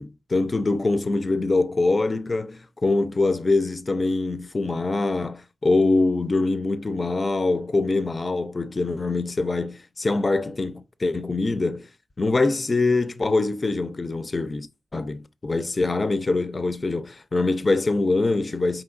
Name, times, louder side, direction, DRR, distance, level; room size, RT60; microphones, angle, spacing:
voice 1, 0.0-11.9 12.2-14.7 14.9-18.8, left 3 dB, 35° left, 0.4 m, -24 dB
4.6 x 3.7 x 2.5 m
wide cardioid pair, 90°, 0 cm